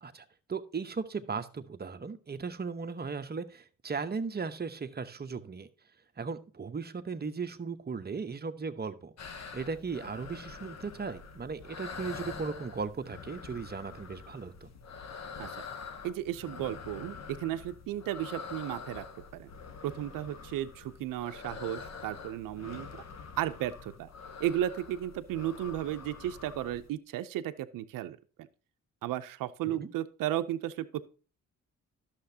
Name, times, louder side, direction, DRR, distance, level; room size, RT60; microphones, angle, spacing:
voice 1, 0.0-5.7 6.2-14.7 29.7-29.9, right 5 dB, 30° right, 8 dB, 0.9 m, -37 dB
sound 1, 9.2-26.9, left 5 dB, 55° left, 1.0 m, -45 dB
voice 2, 16.0-19.0 19.3-19.5 19.8-22.9 23.4-24.1 24.4-28.2 29.0-31.0, right 12 dB, 80° right, 10 dB, 0.5 m, -34 dB
11.5 x 6.8 x 2.7 m, 0.38 s
supercardioid pair, 60°, 32 cm